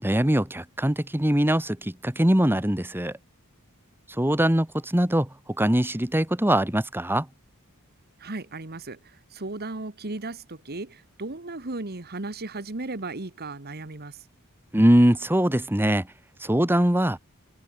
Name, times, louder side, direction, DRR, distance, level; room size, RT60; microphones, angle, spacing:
voice 1, 0.0-3.1 4.2-5.3 5.6-7.3 14.7-16.1 16.4-17.2, right 1 dB, 10° right, 1.6 m, -22 dB
voice 2, 8.2-14.3, right 2 dB, 45° right, 1.6 m, -36 dB
head